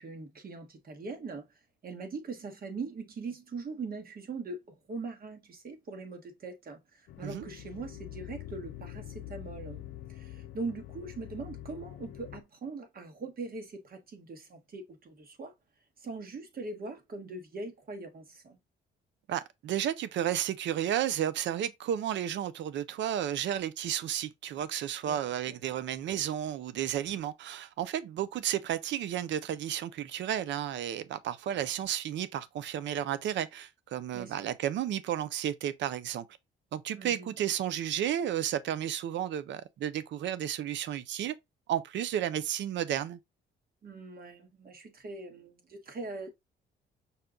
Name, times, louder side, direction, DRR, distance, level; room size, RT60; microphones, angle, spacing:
voice 1, 0.0-1.4 1.8-9.8 10.1-15.5 16.0-18.6 25.1-25.2 25.5-25.6 34.1-34.5 36.9-37.3 43.8-46.3, right 3 dB, 50° right, 1.3 m, -41 dB
sound 1, 7.1-12.4, left 13 dB, 80° left, 0.5 m, -45 dB
voice 2, 19.3-36.3 36.7-41.3 41.7-43.2, right 10 dB, 65° right, 0.5 m, -32 dB
5.5 x 2.3 x 3.6 m
cardioid pair, 90°, 20 cm